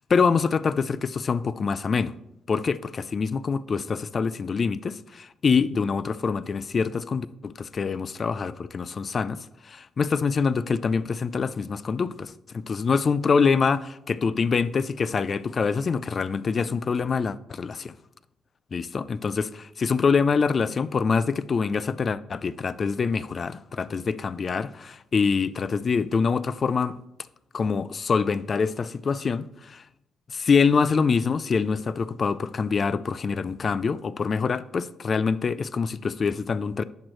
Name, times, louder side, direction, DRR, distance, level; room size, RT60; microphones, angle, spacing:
voice 1, 0.0-2.1 2.5-17.9 18.7-27.0 27.5-29.8 30.3-36.8, left 5 dB, 40° left, 0.4 m, -25 dB
10.5 x 6.2 x 3.2 m
cardioid pair, 90°, 0 cm